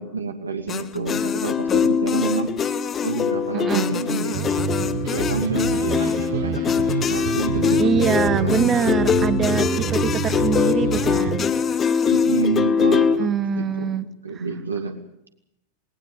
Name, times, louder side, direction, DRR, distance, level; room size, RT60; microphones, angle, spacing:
voice 1, 0.0-2.5 3.0-4.4 5.1-6.7 7.1-9.0 12.1-13.3 13.6-14.0 14.2-15.0, right 4 dB, 80° right, 5 dB, 2.5 m, -28 dB
sound 1, 0.7-13.2, left 7 dB, 25° left, 1.1 m, -22 dB
voice 2, 3.5-3.9 7.8-11.5 13.2-14.1, right 7 dB, 25° right, 16 dB, 1.2 m, -24 dB
sound 2, 4.3-11.4, right 10 dB, 50° right, 1.2 m, -28 dB
19.0 x 19.0 x 8.8 m, 0.77 s
figure-of-eight pair, 90°, 0 cm